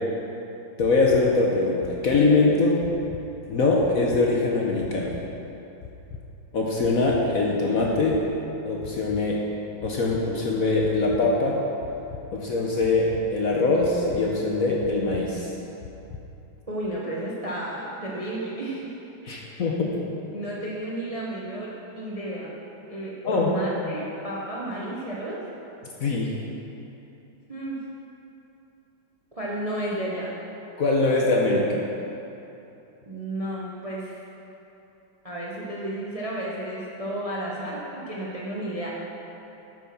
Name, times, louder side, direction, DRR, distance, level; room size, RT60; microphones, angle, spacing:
sound 1, 0.8-1.2 1.8-2.2 2.8-3.2 3.8-4.2 4.8-5.2 5.8-6.2 6.8-7.2 7.8-8.2 8.8-9.2 9.8-10.2 10.8-11.2 11.8-12.2 12.8-13.2 13.8-14.2 14.8-15.2 15.8-16.2, left 7 dB, 80° left, 1.4 m, -40 dB
voice 1, 0.8-2.8 3.5-5.1 6.5-8.2 8.6-9.4 9.8-11.6 12.3-15.5 19.3-20.0 23.2-23.5 26.0-26.3 30.8-31.7, left 3 dB, 55° left, -2 dB, 1.1 m, -22 dB
voice 2, 16.7-18.9 19.2-19.5 20.3-22.5 22.9-25.4 27.5-27.8 29.3-30.3 33.1-34.2 35.2-38.9, right 1 dB, 30° right, -5 dB, 0.7 m, -32 dB
8.9 x 6.4 x 5.9 m, 2.9 s
omnidirectional pair, 2.2 m